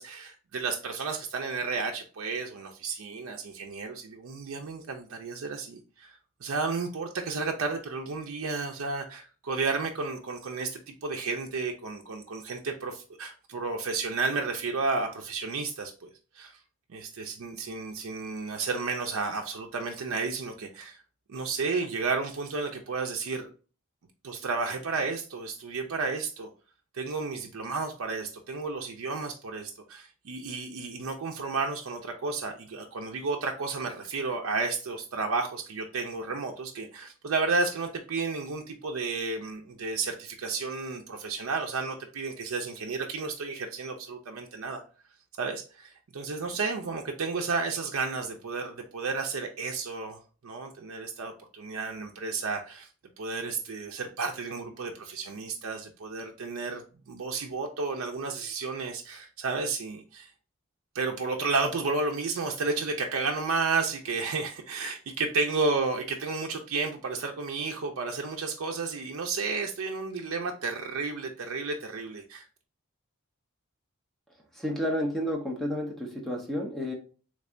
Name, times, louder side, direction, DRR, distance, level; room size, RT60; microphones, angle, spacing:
voice 1, 0.0-16.1 16.3-16.5 16.9-21.0 21.3-23.5 24.2-26.5 26.9-44.8 45.4-52.9 53.2-60.3 60.9-72.4, right 4 dB, 75° right, 2 dB, 0.5 m, -32 dB
voice 2, 74.6-76.9, equal, ahead, 0 dB, 0.8 m, -31 dB
3.5 x 3.2 x 2.5 m, 0.37 s
head